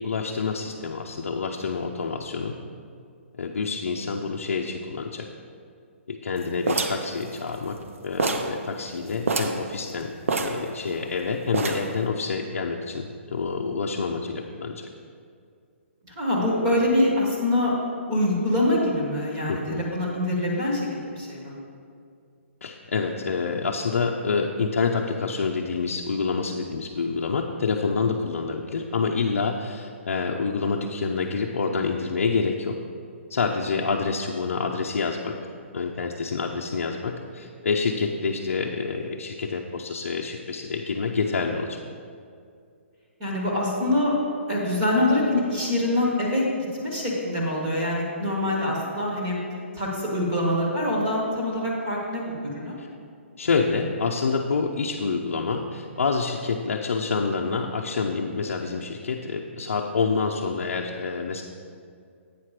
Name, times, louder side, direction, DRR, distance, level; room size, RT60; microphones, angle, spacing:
voice 1, 0.0-2.6 3.3-5.3 6.1-14.9 19.5-19.8 22.6-32.8 33.3-35.4 35.7-41.8 52.8-52.9 53.4-61.4, left 4 dB, 85° left, 0 dB, 0.6 m, -27 dB
sound 1, 6.7-7.9 8.2-8.6 8.9-9.0 9.2-9.6 10.3-11.1 11.5-12.0, right 3 dB, 80° right, 0.8 m, -26 dB
voice 2, 16.0-17.7 18.1-20.9 21.2-21.5 43.2-44.1 44.5-46.4 46.8-49.4 49.7-52.8, left 1 dB, 20° right, -4 dB, 1.1 m, -24 dB
8.6 x 5.9 x 4.8 m, 2.3 s
hypercardioid pair, 180°, 7 cm